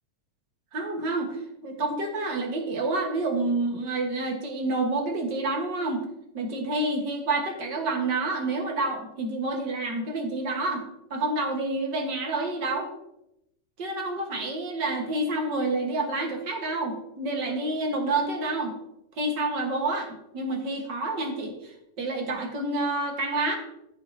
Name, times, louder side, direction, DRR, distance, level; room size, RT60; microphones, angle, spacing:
voice 1, 0.7-6.0 6.3-10.8 11.1-12.9 13.8-18.8 19.2-23.6, right 2 dB, 45° right, 2 dB, 1.7 m, -28 dB
15.0 x 6.8 x 2.8 m, 0.81 s
omnidirectional pair, 3.4 m